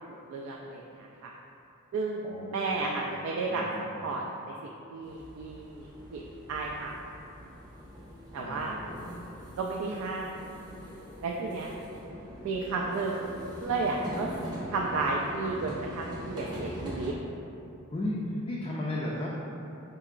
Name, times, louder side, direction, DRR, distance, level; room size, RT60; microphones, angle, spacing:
voice 1, 0.3-0.8 1.2-1.3 1.9-2.2 2.5-3.6 4.0-4.2 4.6-6.2 6.5-6.9 8.3-8.7 9.6-10.3 11.2-11.7 12.4-13.2 13.6-14.4 14.7-17.1, right 3 dB, 75° right, -2 dB, 0.3 m, -32 dB
voice 2, 2.2-3.0 3.5-4.1 8.4-9.2 17.9-19.4, left 1 dB, 25° left, -5 dB, 0.3 m, -35 dB
sound 1, 5.0-17.1, equal, 20° right, 0.7 m, -42 dB
4.5 x 2.9 x 2.4 m, 2.8 s
head